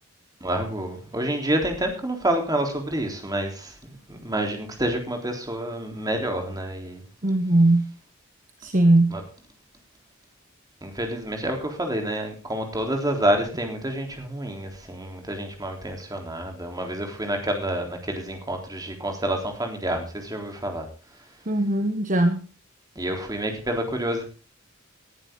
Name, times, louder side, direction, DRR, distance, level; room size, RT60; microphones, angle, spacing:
voice 1, 0.4-7.0 9.1-9.2 10.8-20.9 23.0-24.2, right 1 dB, 20° right, 3 dB, 3.7 m, -28 dB
voice 2, 7.2-7.8 8.6-9.1 21.5-22.4, right 1 dB, 40° right, 7 dB, 1.2 m, -19 dB
19.5 x 11.0 x 3.8 m, 0.35 s
head